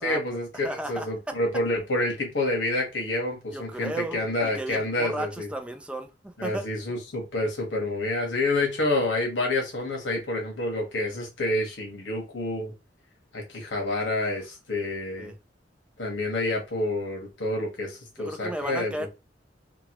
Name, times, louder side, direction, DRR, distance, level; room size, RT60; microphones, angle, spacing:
voice 1, 0.0-5.5 6.4-12.7 13.3-15.3 16.0-18.9, left 2 dB, 85° left, 1.2 m, -28 dB
voice 2, 0.6-1.4 3.5-6.7 15.2-15.4 18.2-19.1, right 1 dB, 5° right, 0.3 m, -34 dB
2.9 x 2.3 x 2.9 m
head